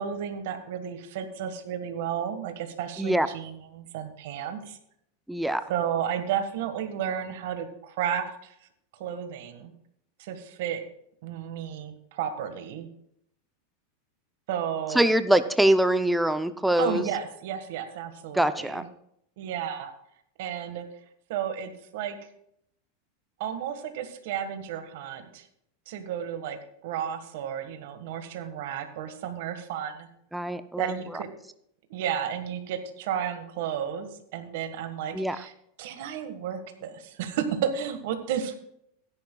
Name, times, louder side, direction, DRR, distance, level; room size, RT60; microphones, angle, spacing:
voice 1, 0.0-4.8 5.7-8.5 9.0-9.7 10.2-10.8 11.2-12.9 14.5-15.0 16.8-18.8 19.4-19.9 20.4-20.8 21.3-22.2 23.4-25.4 25.9-26.6 26.8-30.1 30.8-31.3 31.9-35.5 35.8-38.6, right 9 dB, 65° right, 7 dB, 1.5 m, -32 dB
voice 2, 5.3-5.6 14.9-17.0 18.3-18.8 30.3-30.9 35.1-35.4, right 1 dB, 5° right, 11 dB, 0.5 m, -23 dB
16.5 x 10.5 x 2.3 m, 0.72 s
supercardioid pair, 140°, 0 cm